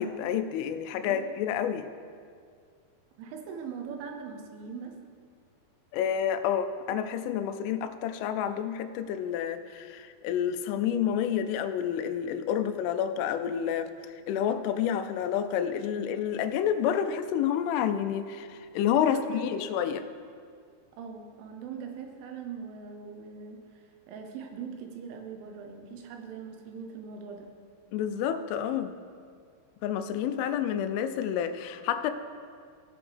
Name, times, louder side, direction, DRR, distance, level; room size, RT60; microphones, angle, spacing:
voice 1, 0.0-1.9 5.9-20.0 27.9-29.0 29.8-32.1, left 9 dB, 85° left, 9 dB, 3.1 m, -29 dB
voice 2, 3.2-5.0 19.0-19.7 21.0-27.5, right 6 dB, 80° right, 4 dB, 3.3 m, -41 dB
17.0 x 7.0 x 3.4 m, 2.2 s
omnidirectional pair, 5.6 m